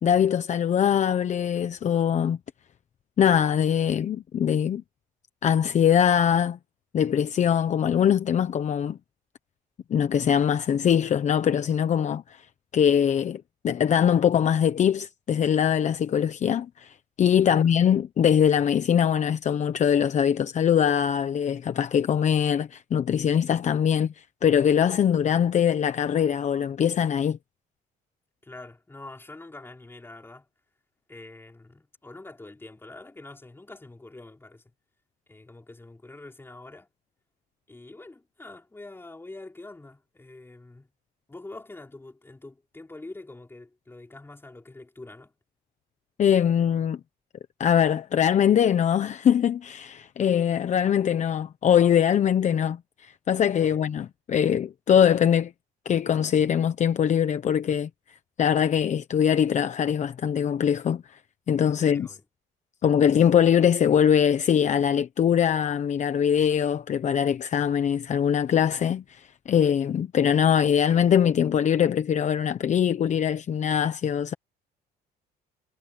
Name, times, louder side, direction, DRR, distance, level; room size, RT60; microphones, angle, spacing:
voice 1, 0.0-2.4 3.2-4.8 5.4-6.6 6.9-9.0 9.9-12.4 12.7-27.4 46.2-47.0 47.6-55.5 55.8-57.9 58.4-61.2 61.5-62.1 62.8-74.3, left 8 dB, 45° left, 1.1 m, -22 dB
voice 2, 17.4-17.7 28.4-30.5 31.1-34.6 35.3-36.9 37.7-40.9 41.3-45.3 53.6-53.8 61.8-62.2, left 2 dB, 15° left, 5.1 m, -45 dB
cardioid pair, 110°, 17 cm